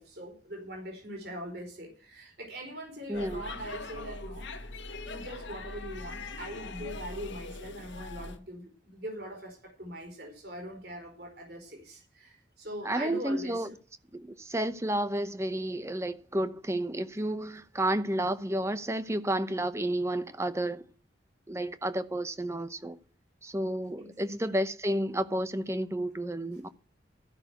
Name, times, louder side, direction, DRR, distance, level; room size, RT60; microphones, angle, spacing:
voice 1, 0.0-4.5 5.0-13.7 24.0-24.1, equal, 55° right, 4.6 m, -42 dB
Speech / Shout / Subway metro underground, 3.1-8.4, left 2 dB, 75° left, 1.5 m, -41 dB
voice 2, 3.1-3.4 12.8-13.7 14.1-20.8 21.5-23.0 23.4-26.7, right 1 dB, 15° right, 0.8 m, -31 dB
14.0 x 6.3 x 7.9 m
head